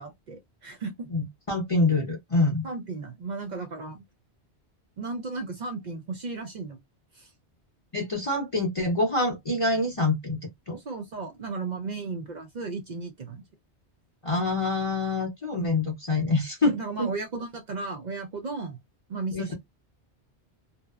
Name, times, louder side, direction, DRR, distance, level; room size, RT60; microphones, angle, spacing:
voice 1, 0.0-1.1 2.6-4.0 5.0-6.8 7.1-7.3 10.8-13.4 16.7-18.8 19.1-19.5, right 3 dB, 55° right, 0.5 m, -35 dB
voice 2, 1.1-2.6 7.9-10.4 10.7-10.8 14.2-17.1 19.3-19.4, left 2 dB, 35° left, 0.7 m, -26 dB
2.6 x 2.0 x 2.3 m
omnidirectional pair, 1.2 m